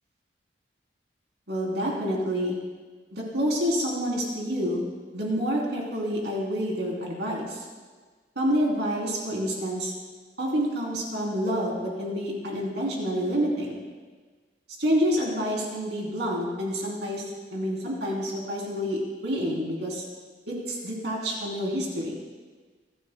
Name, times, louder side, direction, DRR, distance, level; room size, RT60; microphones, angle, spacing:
voice 1, 1.5-2.6 3.1-4.9 5.1-7.6 8.4-9.9 10.4-13.8 14.8-20.0 20.5-22.2, equal, 75° right, -2 dB, 3.3 m, -28 dB
27.0 x 12.5 x 2.2 m, 1.4 s
head